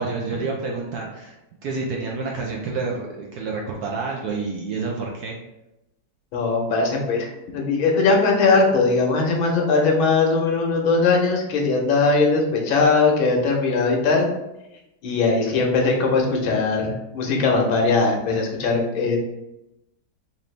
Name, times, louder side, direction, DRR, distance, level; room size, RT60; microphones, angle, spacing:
voice 1, 0.0-5.3, right 4 dB, 70° right, -1 dB, 0.9 m, -29 dB
voice 2, 6.3-14.3 15.0-19.2, left 3 dB, 90° left, 0 dB, 1.7 m, -20 dB
4.3 x 2.6 x 3.1 m, 0.91 s
omnidirectional pair, 2.1 m